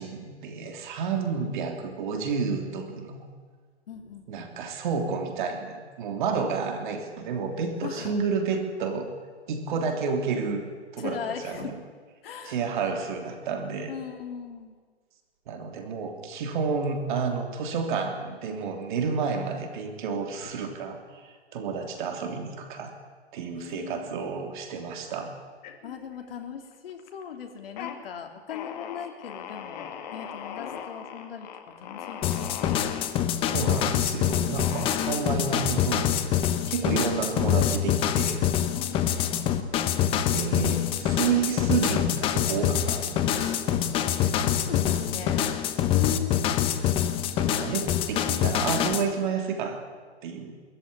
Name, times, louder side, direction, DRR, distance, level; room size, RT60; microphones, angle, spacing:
voice 1, 0.0-3.3 4.3-9.1 9.5-10.6 10.9-11.7 12.4-13.9 15.5-22.9 23.3-25.3 33.5-36.2 36.7-38.4 40.3-43.8 47.4-49.8 50.2-50.5, right 5 dB, 45° right, 5 dB, 3.3 m, -30 dB
voice 2, 3.9-4.5 7.8-8.2 11.0-11.7 12.2-12.6 13.9-14.7 23.6-24.2 25.8-31.5 31.8-32.9 38.7-39.6 44.4-45.5 45.9-46.7, left 8 dB, 60° left, 4 dB, 3.3 m, -38 dB
sound 1, 25.6-26.4 26.7-27.2 27.6-28.0 28.5-33.1 33.6-34.0 34.6-35.6, left 8 dB, 40° left, 2.3 m, -39 dB
sound 2, 32.2-49.1, left 10 dB, 15° left, 0.9 m, -25 dB
22.0 x 14.5 x 9.9 m, 1.5 s
hypercardioid pair, 155°, 33 cm